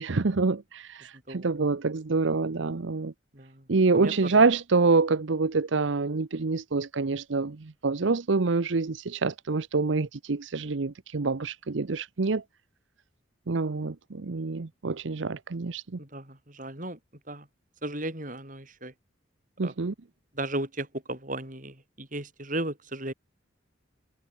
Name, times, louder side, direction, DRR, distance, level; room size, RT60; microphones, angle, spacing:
voice 1, 0.0-3.1 3.7-12.4 13.5-15.8 19.6-19.9, right 4 dB, 75° right, 0.7 m, -26 dB
voice 2, 3.3-3.7 3.9-4.3 16.0-17.0 17.3-17.5 17.8-18.9 19.6-19.7 20.3-23.1, right 1 dB, 40° right, 7.8 m, -35 dB
head